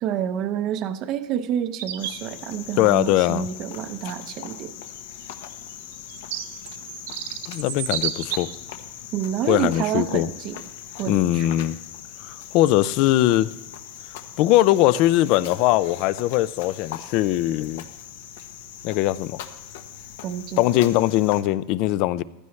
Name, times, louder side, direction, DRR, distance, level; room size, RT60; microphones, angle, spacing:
voice 1, 0.0-4.7 9.1-10.6 11.0-11.5 20.2-20.6, right 9 dB, 35° right, 0.7 m, -28 dB
sound 1, 1.8-2.2 3.8-3.9 5.0-8.7 9.3-9.6 10.2-10.4, right 11 dB, 80° right, 1.0 m, -32 dB
Cricket, 2.0-21.4, left 10 dB, 70° left, 1.1 m, -40 dB
voice 2, 2.8-3.5 7.5-8.5 9.5-10.3 11.1-11.8 12.2-13.5 14.4-17.8 18.8-19.4 20.6-22.2, left 15 dB, 40° left, 0.4 m, -20 dB
15.5 x 12.5 x 3.2 m
supercardioid pair, 170°, 0 cm